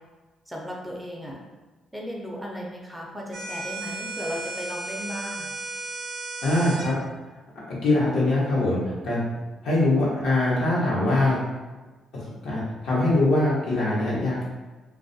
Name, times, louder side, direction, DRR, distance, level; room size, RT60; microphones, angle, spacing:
voice 1, 0.5-1.4 1.9-5.5, equal, 5° right, -2 dB, 0.4 m, -35 dB
sound 1, 3.3-6.9, right 2 dB, 70° right, 0.4 m, -34 dB
voice 2, 6.4-6.9 7.8-9.2 9.6-11.4 12.1-14.4, left 2 dB, 75° left, -7 dB, 0.9 m, -23 dB
2.3 x 2.1 x 2.6 m, 1.2 s
cardioid pair, 90°, 0 cm